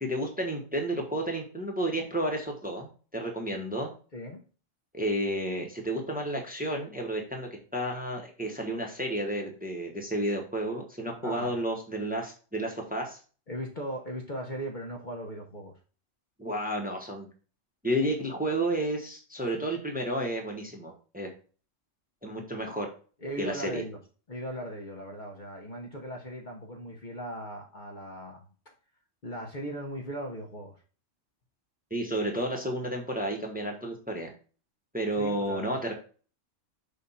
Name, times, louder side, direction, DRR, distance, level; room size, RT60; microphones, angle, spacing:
voice 1, 0.0-3.9 4.9-13.2 16.4-17.3 17.8-21.3 22.2-22.9 23.4-23.8 31.9-34.3 34.9-35.9, right 1 dB, 5° right, 1 dB, 1.1 m, -31 dB
voice 2, 4.1-4.4 11.2-11.5 13.5-15.8 19.4-19.5 23.2-24.0 24.3-28.7 29.2-30.8 35.2-35.8, equal, 45° left, 1 dB, 1.0 m, -38 dB
6.7 x 2.5 x 5.5 m, 0.38 s
omnidirectional pair, 1.3 m